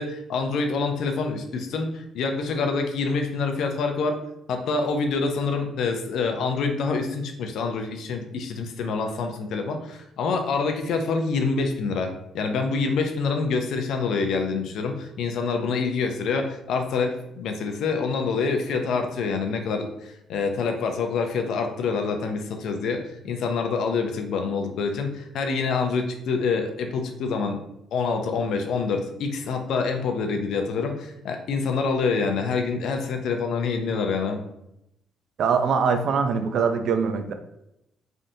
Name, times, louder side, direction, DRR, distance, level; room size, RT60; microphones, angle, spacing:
voice 1, 0.0-4.2 4.5-27.6 27.9-34.4, left 4 dB, 75° left, 5 dB, 0.4 m, -26 dB
voice 2, 35.4-37.3, right 6 dB, 70° right, 7 dB, 0.4 m, -23 dB
3.3 x 2.6 x 2.6 m, 0.82 s
cardioid pair, 90°, 0 cm